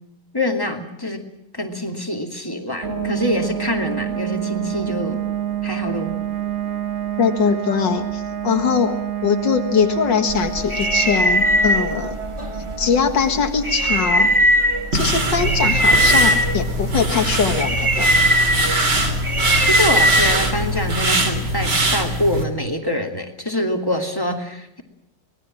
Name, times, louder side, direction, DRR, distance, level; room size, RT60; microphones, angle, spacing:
voice 1, 0.3-1.2 1.5-5.2 5.6-6.2 19.7-24.8, left 1 dB, 10° left, 3 dB, 2.5 m, -25 dB
sound 1, 2.8-17.4, right 9 dB, 40° right, 1.5 m, -29 dB
voice 2, 7.2-12.2 12.8-14.4 14.9-18.1, left 6 dB, 75° left, 6 dB, 2.3 m, -21 dB
sound 2, 10.3-20.9, right 1 dB, 15° right, 1.9 m, -20 dB
sound 3, 14.9-22.4, right 1 dB, 65° right, 3.8 m, -22 dB
25.5 x 20.5 x 7.6 m, 0.78 s
omnidirectional pair, 2.0 m